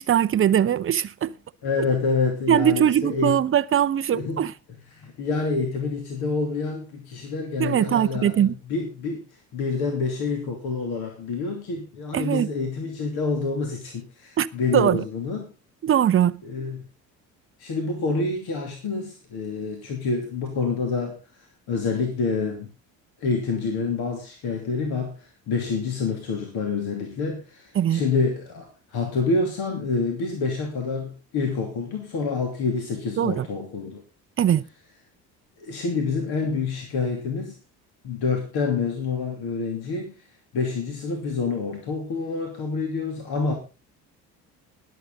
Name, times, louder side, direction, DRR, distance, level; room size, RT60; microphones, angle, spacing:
voice 1, 0.0-1.3 2.5-4.5 7.6-8.5 12.1-12.5 14.4-14.5 14.7-15.0 15.8-16.4 27.8-28.0 33.2-33.5 34.4-34.6, right 10 dB, 25° right, 0.7 m, -21 dB
voice 2, 1.6-3.4 4.1-4.5 4.9-9.2 9.5-15.5 16.4-16.8 17.6-22.7 23.2-34.0 35.6-37.5 38.0-40.1 40.5-43.5, left 4 dB, 50° left, 2.8 m, -27 dB
21.5 x 7.5 x 3.9 m
figure-of-eight pair, 55°, 48 cm